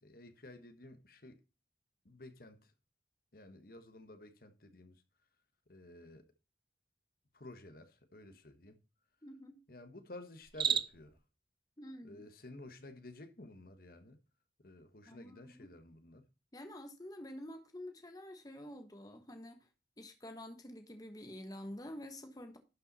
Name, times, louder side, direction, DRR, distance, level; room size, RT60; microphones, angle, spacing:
voice 1, 0.0-1.4 2.0-2.7 3.3-5.0 5.7-6.3 7.3-8.8 9.7-11.2 12.0-14.2 14.6-16.3, left 1 dB, 55° left, 1.4 m, -53 dB
voice 2, 9.2-9.6 11.8-12.2 15.1-15.7 16.5-19.6 20.0-22.6, left 1 dB, 20° left, 1.3 m, -48 dB
Cricket, 10.4-11.2, right 8 dB, 30° right, 0.5 m, -33 dB
11.5 x 5.5 x 4.2 m
head